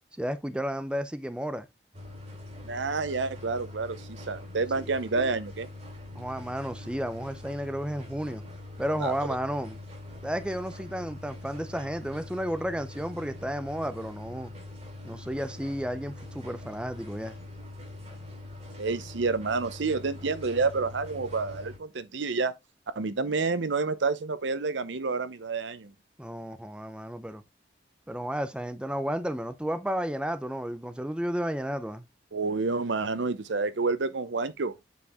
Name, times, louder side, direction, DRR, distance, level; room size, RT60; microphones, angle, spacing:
voice 1, 0.2-1.7 4.7-4.8 6.2-8.4 8.8-9.8 10.2-14.5 15.0-17.4 26.2-27.4 28.1-32.0, equal, 5° right, 0.5 m, -32 dB
sound 1, 1.9-21.8, left 2 dB, 35° right, 3.5 m, -43 dB
voice 2, 2.6-5.7 9.0-9.1 18.8-22.5 23.0-25.9 32.3-34.7, right 4 dB, 80° right, 0.7 m, -29 dB
8.4 x 4.5 x 3.5 m
head